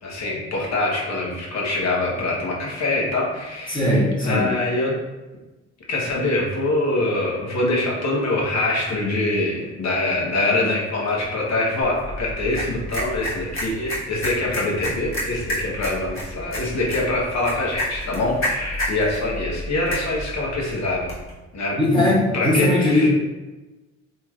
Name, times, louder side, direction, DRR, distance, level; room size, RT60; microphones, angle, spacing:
voice 1, 0.0-4.9 5.9-21.1 21.5-22.1 22.3-23.1, left 2 dB, 65° left, -3 dB, 1.0 m, -24 dB
voice 2, 3.7-4.5 21.8-23.1, left 1 dB, 15° left, -7 dB, 1.4 m, -19 dB
sound 1, 11.8-21.3, equal, 45° left, 1.3 m, -31 dB
3.0 x 2.8 x 2.4 m, 1.1 s
cardioid pair, 90°, 30 cm